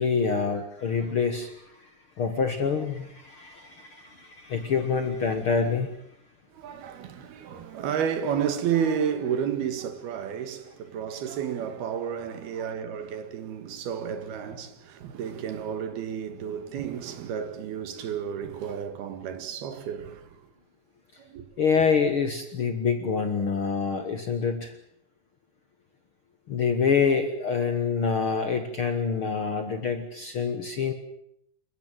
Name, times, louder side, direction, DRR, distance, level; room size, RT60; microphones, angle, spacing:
voice 1, 0.0-1.5 2.2-5.9 21.6-24.7 26.5-30.9, left 5 dB, 60° left, 1.4 m, -26 dB
voice 2, 6.6-20.2 21.3-21.4, right 8 dB, 75° right, 3.6 m, -31 dB
28.0 x 15.0 x 9.0 m
omnidirectional pair, 4.6 m